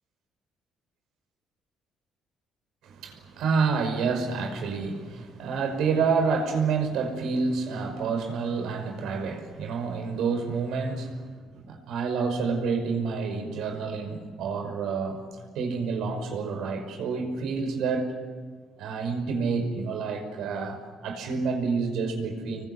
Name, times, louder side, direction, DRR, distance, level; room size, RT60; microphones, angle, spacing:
voice 1, 2.8-11.3 11.5-18.2 18.8-22.7, right 5 dB, 80° right, 5.6 m, -28 dB
27.0 x 23.5 x 8.2 m
cardioid pair, 100°, 0 cm